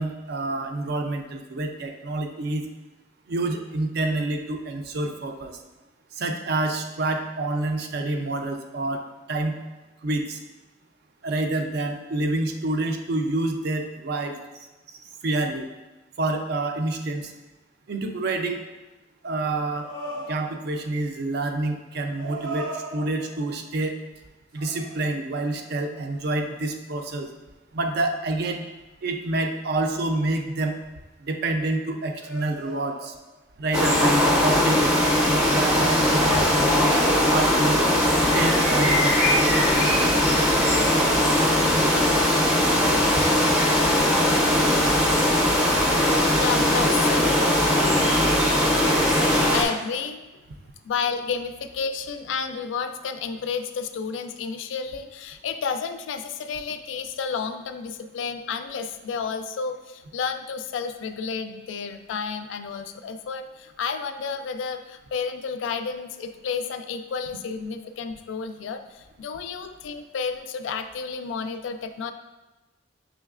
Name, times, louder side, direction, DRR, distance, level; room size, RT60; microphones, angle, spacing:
voice 1, 0.0-2.6 3.3-5.6 6.2-9.0 9.3-9.5 10.0-10.4 11.2-14.3 15.2-15.7 16.2-17.3 17.9-18.6 19.2-19.9 20.3-23.9 24.5-27.3 27.7-28.6 29.0-30.8 31.2-33.1 33.6-34.8 35.3-37.8 38.3-39.2 43.4-43.5 46.0-46.5, right 2 dB, 55° right, 5 dB, 0.4 m, -28 dB
sound 1, 19.8-20.9 22.1-23.6 24.6-25.6 26.1-26.3 32.2-33.4, right 2 dB, 85° right, 1.0 m, -38 dB
sound 2, 33.7-49.6, left 1 dB, 5° right, 0.5 m, -20 dB
voice 2, 46.4-47.5 49.5-50.2 50.8-72.1, left 6 dB, 70° left, 9 dB, 0.3 m, -31 dB
6.0 x 3.1 x 2.4 m, 1.1 s
head